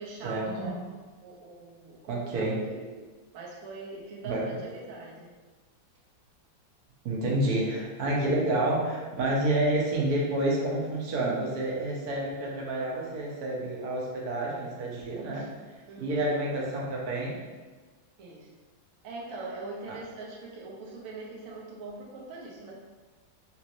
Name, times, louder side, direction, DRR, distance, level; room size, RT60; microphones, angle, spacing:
voice 1, 0.0-2.9 3.3-5.3 15.3-15.5 15.9-16.2 18.2-18.5 19.0-22.7, right 3 dB, 80° right, -3 dB, 0.7 m, -41 dB
voice 2, 2.1-2.6 4.2-4.5 7.0-17.4, right 1 dB, 65° right, -3 dB, 1.0 m, -29 dB
3.9 x 3.0 x 2.5 m, 1.3 s
omnidirectional pair, 2.2 m